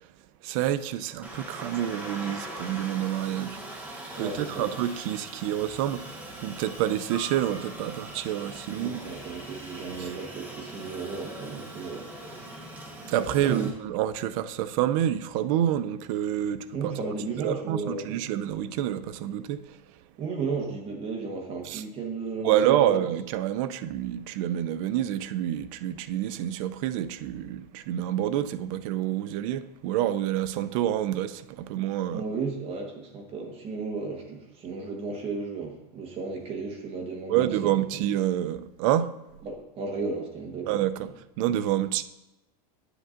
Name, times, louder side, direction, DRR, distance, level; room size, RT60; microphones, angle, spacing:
voice 1, 0.4-3.6 4.2-9.0 10.0-10.1 13.1-19.8 21.6-21.8 22.4-32.2 37.3-39.1 40.7-41.1 41.4-42.0, right 11 dB, 55° right, 0.4 m, -28 dB
Aircraft, 1.2-13.7, right 1 dB, 5° right, 0.9 m, -41 dB
voice 2, 4.2-4.7 8.7-12.1 13.3-13.7 16.7-18.2 20.2-22.9 32.1-37.8 39.4-40.7, right 4 dB, 30° right, 1.2 m, -34 dB
9.3 x 7.9 x 2.5 m
supercardioid pair, 165°, 20 cm